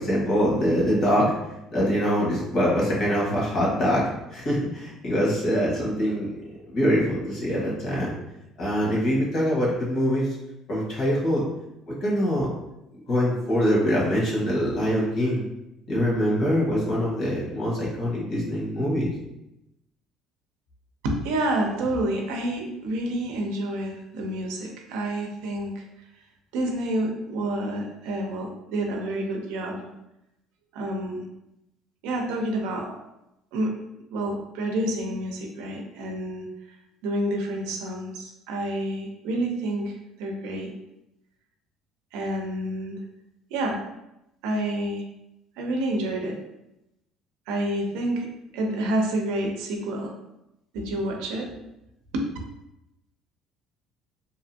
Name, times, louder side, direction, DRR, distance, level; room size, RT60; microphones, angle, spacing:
voice 1, 0.0-1.4 1.7-6.3 6.7-8.1 8.6-10.4 10.7-11.4 11.9-12.5 13.1-15.4 15.9-19.1, equal, 50° left, -4 dB, 1.2 m, -24 dB
voice 2, 21.0-25.8 26.5-29.9 30.7-31.3 32.0-32.9 33.5-33.7 34.1-36.5 37.0-40.7 42.1-43.0 43.5-43.8 44.4-45.0 45.6-46.4 47.5-48.3 48.5-50.1 50.7-51.5 52.1-52.3, right 1 dB, 85° right, 2 dB, 0.5 m, -28 dB
2.7 x 2.5 x 2.6 m, 0.88 s
cardioid pair, 135°, 0 cm